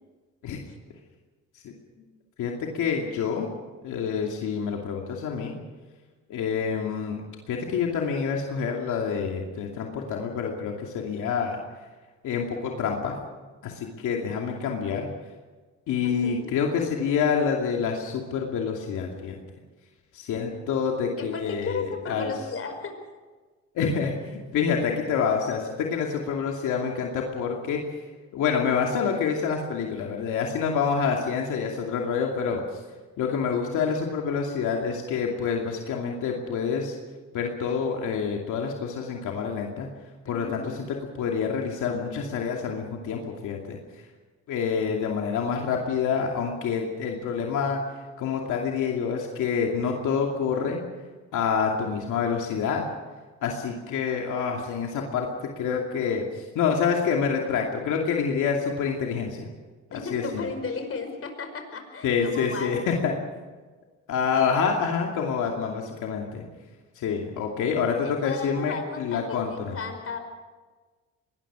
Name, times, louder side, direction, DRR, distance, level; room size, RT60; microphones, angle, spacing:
voice 1, 2.4-3.5 3.8-5.6 6.3-7.2 7.5-11.6 12.2-13.1 13.6-15.1 15.9-19.4 20.1-22.3 23.7-27.8 28.3-32.6 33.2-37.0 37.3-39.9 40.3-40.6 41.1-43.8 44.5-47.8 48.2-50.8 51.3-52.9 53.4-59.5 60.1-60.4 62.0-63.2 64.1-66.4 67.0-69.8, left 6 dB, 85° left, 0 dB, 2.6 m, -27 dB
voice 2, 16.0-16.5 21.2-23.1 33.3-33.7 40.2-40.7 59.9-63.0 68.0-70.2, left 4 dB, 50° left, 6 dB, 5.1 m, -35 dB
23.5 x 20.0 x 6.3 m, 1.3 s
cardioid pair, 90°, 30 cm